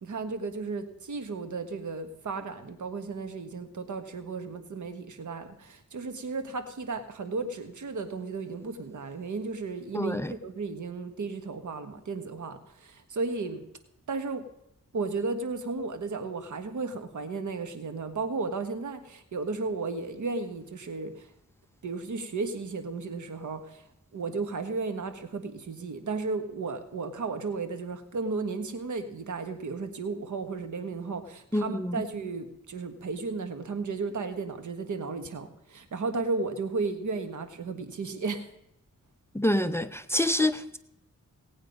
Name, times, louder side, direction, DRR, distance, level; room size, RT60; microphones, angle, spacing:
voice 1, 0.0-13.6 14.1-14.4 14.9-21.3 21.8-23.8 24.1-38.5, right 4 dB, 75° right, 8 dB, 1.5 m, -34 dB
voice 2, 9.9-10.3 31.5-32.0 39.3-40.8, left 1 dB, 10° left, 12 dB, 0.6 m, -27 dB
18.0 x 8.7 x 5.3 m, 0.81 s
wide cardioid pair, 85°, 30 cm